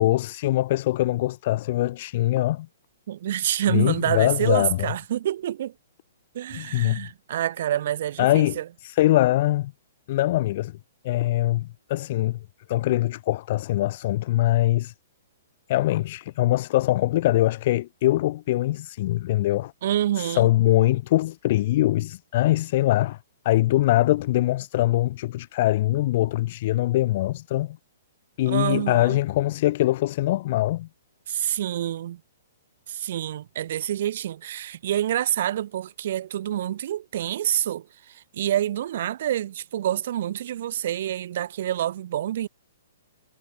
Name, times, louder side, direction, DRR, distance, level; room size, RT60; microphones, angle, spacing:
voice 1, 0.0-2.7 3.7-4.9 6.5-7.0 8.2-9.7 10.1-10.8 11.0-12.4 12.7-14.9 15.7-19.7 20.2-23.2 23.4-27.8 28.4-30.9, left 16 dB, 40° left, 1.2 m, -23 dB
voice 2, 3.1-5.7 6.3-8.6 19.8-20.5 28.5-29.2 31.3-32.2 32.9-42.5, right 11 dB, 50° right, 1.9 m, -27 dB
hypercardioid pair, 165°, 0 cm